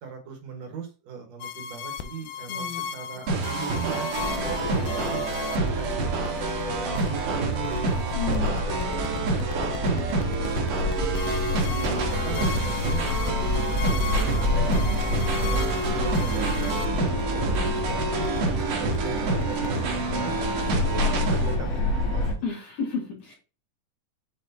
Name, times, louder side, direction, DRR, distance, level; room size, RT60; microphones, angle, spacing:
voice 1, 0.0-4.7 4.9-6.4 6.6-8.0 8.2-10.6 10.8-14.7 15.4-20.3 20.9-22.2, right 6 dB, 60° right, 3 dB, 2.3 m, -39 dB
sound 1, 1.4-19.7, left 7 dB, 85° left, 2.2 m, -37 dB
voice 2, 2.5-2.8 8.1-8.6 22.4-23.3, left 5 dB, 65° left, -3 dB, 3.2 m, -32 dB
sound 2, 3.3-21.5, right 3 dB, 80° right, 3.0 m, -28 dB
sound 3, 4.2-22.3, left 2 dB, 45° left, 2.7 m, -29 dB
7.9 x 4.8 x 2.7 m, 0.32 s
omnidirectional pair, 3.7 m